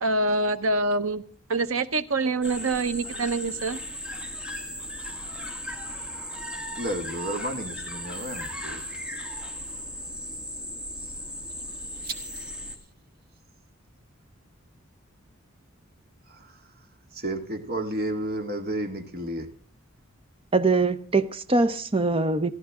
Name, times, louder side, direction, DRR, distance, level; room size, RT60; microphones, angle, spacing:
voice 1, 0.0-1.2 1.5-3.8, right 2 dB, 85° right, 11 dB, 1.1 m, -25 dB
sound 1, 2.4-12.8, equal, 5° right, 2.0 m, -36 dB
voice 2, 6.8-8.8 12.0-12.2 16.3-16.5 17.1-19.5, right 1 dB, 50° right, 6 dB, 2.1 m, -32 dB
voice 3, 20.5-22.5, right 3 dB, 25° right, 12 dB, 0.8 m, -23 dB
28.5 x 11.0 x 3.7 m, 0.41 s
head